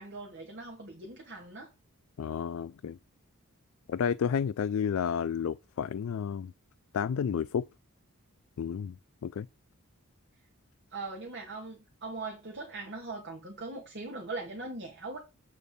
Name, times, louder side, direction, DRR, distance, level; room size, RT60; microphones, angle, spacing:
voice 1, 0.0-1.7 10.9-15.2, right 3 dB, 50° right, 2.1 m, -40 dB
voice 2, 2.2-3.0 3.9-6.5 6.9-7.7 8.6-8.9 9.2-9.5, left 7 dB, 65° left, 0.3 m, -31 dB
8.6 x 4.2 x 5.3 m
head